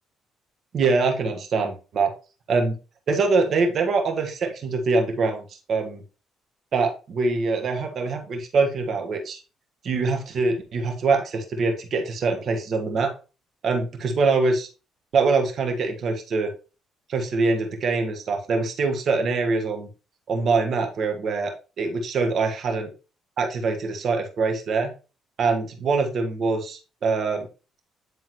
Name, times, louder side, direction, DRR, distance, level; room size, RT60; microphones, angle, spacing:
voice 1, 0.7-2.1 2.5-2.7 3.1-5.4 5.7-6.0 6.7-9.4 9.8-13.1 13.6-14.7 15.1-16.5 17.1-19.9 20.3-21.5 21.8-22.9 23.4-24.9 25.4-27.5, right 4 dB, 55° right, 4 dB, 1.4 m, -24 dB
9.4 x 3.8 x 3.0 m, 0.32 s
cardioid pair, 105°, 0 cm